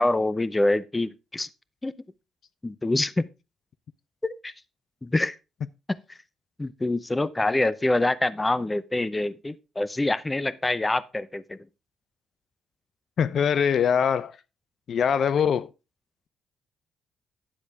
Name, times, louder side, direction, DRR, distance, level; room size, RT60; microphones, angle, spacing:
voice 1, 0.0-1.5 1.8-1.9 2.6-3.3 4.2-4.5 5.0-5.3 6.6-11.6, left 2 dB, 15° left, 0.6 m, -25 dB
voice 2, 13.2-14.4 14.9-15.7, left 7 dB, 60° left, 0.4 m, -22 dB
10.0 x 8.2 x 3.4 m
cardioid pair, 90°, 0 cm